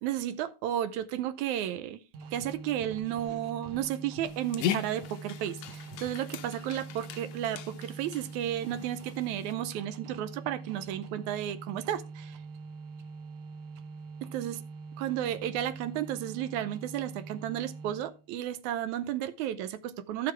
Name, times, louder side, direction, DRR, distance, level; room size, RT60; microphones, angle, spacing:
voice 1, 0.0-2.0 2.3-12.4 14.2-14.6 15.0-20.3, right 11 dB, 80° right, 2.1 m, -33 dB
sound 1, 2.1-18.3, right 4 dB, 65° right, 1.9 m, -44 dB
Dog, 4.2-9.5, left 10 dB, 80° left, 1.5 m, -39 dB
13.0 x 6.7 x 3.3 m
omnidirectional pair, 3.4 m